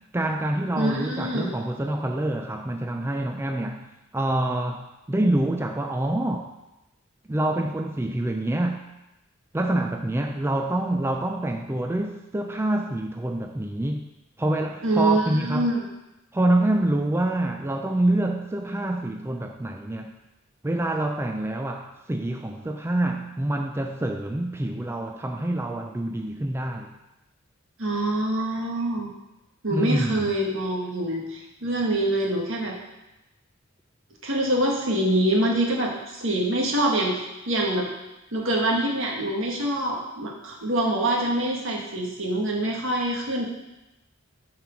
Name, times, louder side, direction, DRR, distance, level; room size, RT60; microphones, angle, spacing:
voice 1, 0.1-3.9 4.1-6.5 7.3-8.8 9.5-14.1 14.4-15.7 16.3-20.1 20.6-26.9 29.7-30.4, right 1 dB, 10° right, 4 dB, 0.4 m, -26 dB
voice 2, 0.8-1.5 14.8-15.8 27.8-29.1 29.6-32.8 34.2-37.1 37.5-37.9 38.3-43.5, right 1 dB, 70° right, -1 dB, 1.7 m, -25 dB
7.7 x 4.8 x 5.7 m, 0.96 s
head